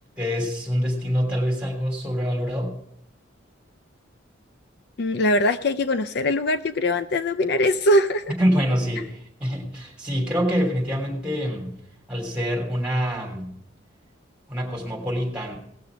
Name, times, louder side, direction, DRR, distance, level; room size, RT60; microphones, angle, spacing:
voice 1, 0.2-2.7 8.4-11.7 12.1-13.5 14.5-15.6, equal, 5° right, -1 dB, 3.2 m, -25 dB
voice 2, 5.0-8.3, left 1 dB, 60° left, 11 dB, 0.4 m, -22 dB
18.5 x 6.7 x 5.0 m, 0.71 s
head